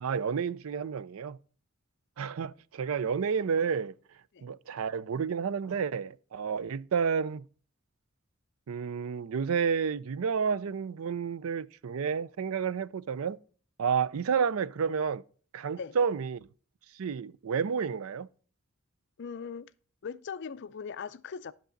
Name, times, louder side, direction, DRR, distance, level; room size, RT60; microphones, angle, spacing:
voice 1, 0.0-1.4 2.2-3.9 4.4-7.4 8.7-13.4 13.8-15.2 15.5-16.5 16.9-18.3, right 6 dB, 80° right, 0.4 m, -30 dB
voice 2, 19.2-19.7 20.0-21.5, left 6 dB, 60° left, 0.5 m, -39 dB
11.5 x 6.1 x 3.9 m
head